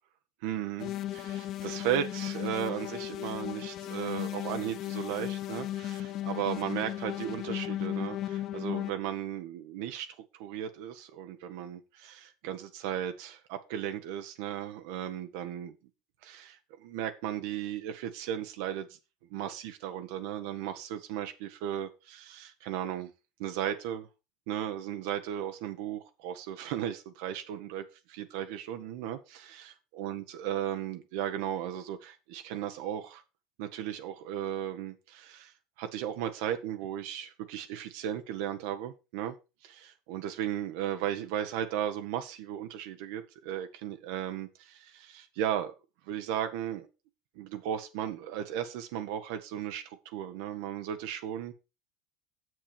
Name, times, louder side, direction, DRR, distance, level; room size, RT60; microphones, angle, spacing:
voice 1, 0.4-10.1 10.3-15.7 16.2-18.9 19.3-23.1 23.4-24.1 24.5-33.2 33.6-39.3 39.6-45.7 46.1-46.9 47.3-51.5, right 10 dB, 65° right, 7 dB, 1.2 m, -36 dB
sound 1, 0.8-8.9, left 13 dB, 50° left, 0.7 m, -36 dB
7.8 x 7.2 x 4.9 m, 0.29 s
hypercardioid pair, 75°, 0 cm